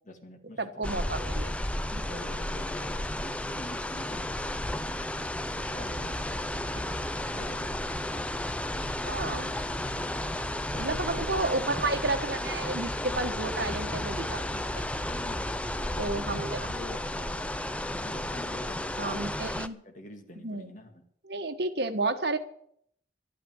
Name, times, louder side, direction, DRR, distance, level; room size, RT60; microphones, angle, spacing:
voice 1, 0.0-1.1 2.1-4.9 5.7-6.7 7.3-7.8 10.7-11.2 14.5-14.7 15.1-19.2 19.6-21.0, left 1 dB, 40° left, 4 dB, 2.2 m, -46 dB
voice 2, 0.6-1.5 1.9-2.3 6.7-6.9 9.0-9.5 10.8-14.4 16.0-16.7 19.0-19.8 20.4-20.7 21.2-22.4, right 2 dB, 60° right, 6 dB, 1.4 m, -32 dB
sound 1, 0.8-19.7, left 1 dB, 5° left, 0.5 m, -33 dB
sound 2, 5.3-16.9, equal, 40° right, 3.5 m, -41 dB
12.0 x 9.4 x 8.9 m, 0.67 s
head